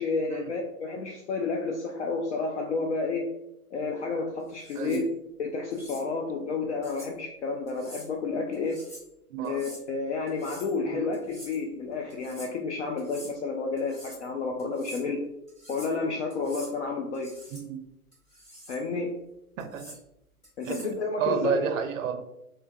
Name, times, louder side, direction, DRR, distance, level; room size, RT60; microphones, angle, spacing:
voice 1, 0.0-3.3 3.7-5.0 5.4-8.8 9.4-15.2 15.7-17.3 18.7-19.1 20.6-21.7, left 4 dB, 50° left, 1 dB, 0.5 m, -31 dB
sound 1, 4.5-5.0 5.7-6.0 6.8-7.1 7.7-8.1 8.5-9.1 9.4-9.8 10.3-10.7 11.1-11.6 12.1-12.5 13.0-13.3 13.8-14.3 14.6-15.0 15.5-16.0 16.3-16.7 17.1-17.6 18.1-18.8 19.6-20.0 20.4-21.0, left 1 dB, 15° left, 1.1 m, -47 dB
voice 2, 4.8-5.1 9.3-9.6 10.9-11.1 17.5-17.8 19.6-20.0 20.6-20.9 21.2-22.2, right 7 dB, 60° right, 7 dB, 0.5 m, -30 dB
3.2 x 2.2 x 2.3 m, 0.84 s
hypercardioid pair, 130°, 45 cm